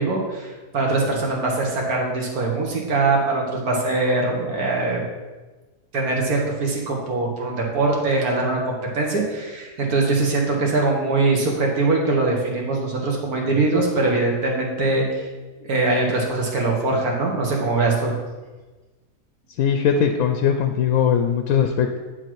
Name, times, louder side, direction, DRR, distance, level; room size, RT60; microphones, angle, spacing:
voice 1, 0.0-5.0 5.9-15.3 15.7-18.2, right 3 dB, 65° right, -1 dB, 1.8 m, -22 dB
voice 2, 19.6-22.0, left 7 dB, 70° left, 6 dB, 1.0 m, -20 dB
9.6 x 4.2 x 4.6 m, 1.2 s
omnidirectional pair, 1.7 m